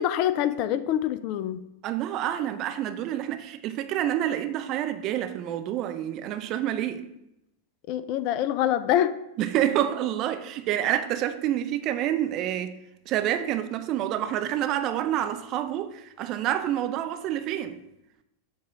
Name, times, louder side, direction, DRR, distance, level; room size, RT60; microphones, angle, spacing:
voice 1, 0.0-1.7 7.9-9.2, left 11 dB, 45° left, 0.3 m, -25 dB
voice 2, 1.8-7.0 9.4-12.8 13.1-17.8, right 11 dB, 40° right, 0.4 m, -28 dB
7.4 x 2.8 x 4.6 m
figure-of-eight pair, 90°, 0 cm